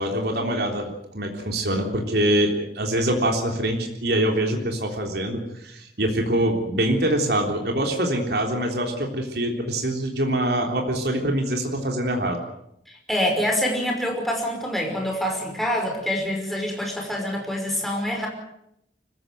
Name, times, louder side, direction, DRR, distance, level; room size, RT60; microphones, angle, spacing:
voice 1, 0.0-12.4, right 1 dB, 60° right, 2 dB, 3.6 m, -24 dB
voice 2, 12.9-18.3, equal, ahead, 0 dB, 5.5 m, -26 dB
25.0 x 15.0 x 9.3 m, 0.79 s
head